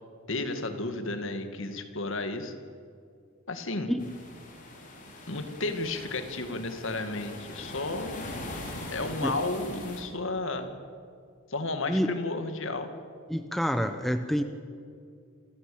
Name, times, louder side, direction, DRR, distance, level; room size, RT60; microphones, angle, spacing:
voice 1, 0.3-2.5 3.5-3.9 5.3-8.2 8.9-10.7 11.5-12.9, left 2 dB, 60° left, 7 dB, 2.1 m, -32 dB
sound 1, 4.0-10.0, left 1 dB, 35° left, 4.3 m, -41 dB
voice 2, 13.3-14.4, equal, ahead, 7 dB, 0.8 m, -27 dB
28.0 x 15.0 x 8.7 m, 2.3 s
head